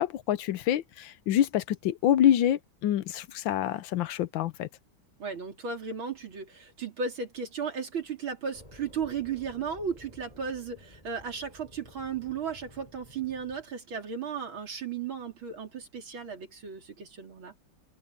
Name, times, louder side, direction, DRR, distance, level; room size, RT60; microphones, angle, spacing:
voice 1, 0.0-4.7, left 11 dB, 80° left, 1.5 m, -26 dB
voice 2, 5.2-17.5, right 6 dB, 90° right, 4.2 m, -35 dB
sound 1, 8.5-13.6, left 1 dB, 15° left, 4.4 m, -53 dB
open air
omnidirectional pair, 2.2 m